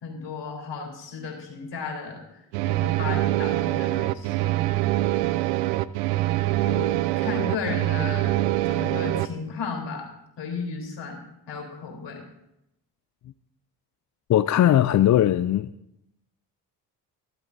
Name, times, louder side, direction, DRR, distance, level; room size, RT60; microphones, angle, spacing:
voice 1, 0.0-2.2 2.6-4.5 6.6-8.4 8.7-10.1 10.4-11.2 11.5-12.2, left 5 dB, 55° left, 3.8 m, -34 dB
sound 1, 2.5-9.3, right 17 dB, 80° right, 0.6 m, -24 dB
voice 2, 14.3-15.7, left 12 dB, 40° left, 0.4 m, -19 dB
22.5 x 8.0 x 2.7 m
hypercardioid pair, 50°, 50 cm